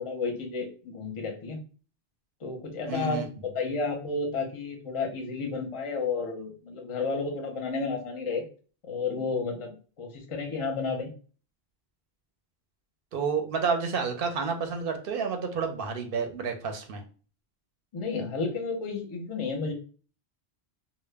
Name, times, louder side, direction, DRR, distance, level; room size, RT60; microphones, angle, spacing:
voice 1, 0.0-1.6 2.4-8.4 8.8-11.1 17.9-19.7, left 4 dB, 40° left, 3 dB, 0.5 m, -32 dB
voice 2, 2.9-3.3 13.1-17.0, right 5 dB, 65° right, 5 dB, 0.7 m, -30 dB
2.1 x 2.0 x 3.2 m, 0.39 s
omnidirectional pair, 1.1 m